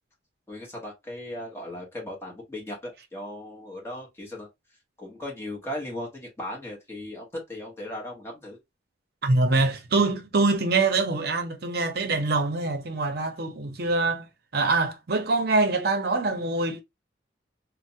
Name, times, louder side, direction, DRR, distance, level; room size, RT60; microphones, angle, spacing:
voice 1, 0.5-4.5 5.0-8.6, left 1 dB, 15° left, 1.0 m, -37 dB
voice 2, 9.2-14.3 14.5-16.8, right 3 dB, 60° right, 0.6 m, -24 dB
3.2 x 2.0 x 2.6 m
head